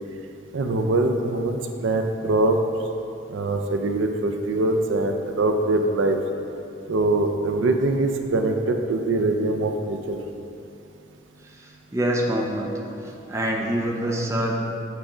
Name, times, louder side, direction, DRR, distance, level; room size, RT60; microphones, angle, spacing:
voice 1, 0.5-2.6 3.3-6.2 6.9-10.2, right 2 dB, 75° right, 5 dB, 0.4 m, -23 dB
voice 2, 11.6-12.7 13.0-14.5, right 1 dB, 15° right, -1 dB, 0.5 m, -26 dB
7.5 x 3.4 x 4.9 m, 2.6 s
head